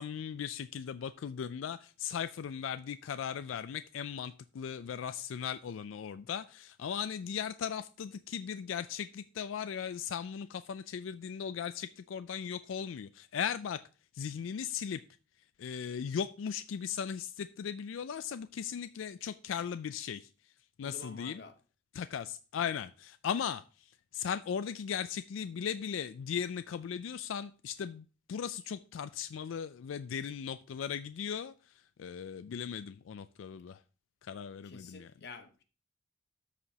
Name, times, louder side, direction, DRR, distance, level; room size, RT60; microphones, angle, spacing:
voice 1, 0.0-13.8 14.1-15.0 15.6-20.3 20.8-21.4 21.9-33.8 34.2-35.1, left 7 dB, 80° left, 0.4 m, -38 dB
voice 2, 20.8-21.5 34.6-35.6, left 3 dB, 55° left, 0.9 m, -49 dB
13.0 x 4.9 x 2.8 m
head